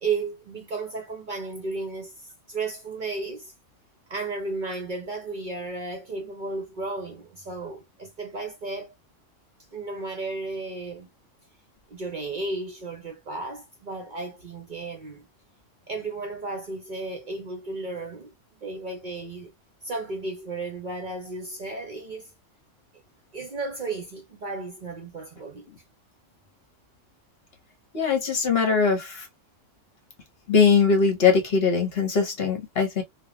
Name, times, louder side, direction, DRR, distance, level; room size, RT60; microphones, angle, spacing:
voice 1, 0.0-3.5 4.1-8.9 9.7-11.1 11.9-15.3 15.9-19.5 19.8-22.3 23.3-25.6, right 3 dB, 50° right, 0.7 m, -34 dB
voice 2, 27.9-29.3 30.5-33.0, left 5 dB, 55° left, 1.2 m, -21 dB
3.2 x 2.3 x 2.3 m
omnidirectional pair, 1.3 m